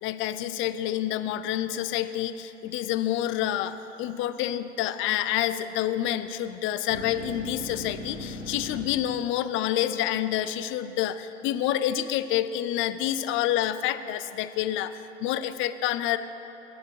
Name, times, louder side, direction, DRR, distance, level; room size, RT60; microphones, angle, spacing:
voice 1, 0.0-16.2, left 12 dB, 35° left, 13 dB, 0.5 m, -28 dB
sound 1, 6.9-8.8, left 2 dB, 85° left, 3.4 m, -38 dB
14.5 x 9.7 x 4.7 m, 3.0 s
figure-of-eight pair, 75°, 38 cm